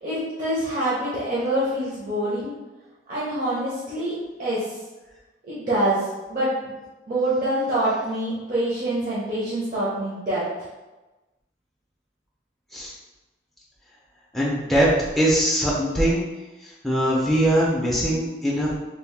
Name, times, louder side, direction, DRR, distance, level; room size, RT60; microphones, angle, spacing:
voice 1, 0.0-2.5 3.1-4.7 5.5-6.7 7.1-10.4, right 1 dB, 45° right, -9 dB, 0.6 m, -25 dB
voice 2, 14.3-14.9 15.2-16.2 16.6-18.7, right 1 dB, ahead, -6 dB, 0.3 m, -21 dB
2.7 x 2.0 x 3.1 m, 1.1 s
head